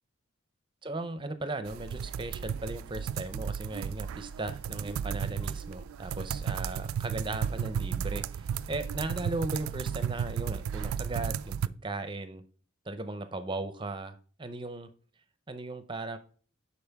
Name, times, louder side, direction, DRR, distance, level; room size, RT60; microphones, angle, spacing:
voice 1, 0.8-12.4 12.9-14.9 15.5-16.2, right 2 dB, 25° right, 11 dB, 0.6 m, -37 dB
sound 1, 1.7-11.7, right 8 dB, 85° right, 0.3 m, -34 dB
11.0 x 4.3 x 3.5 m, 0.42 s
head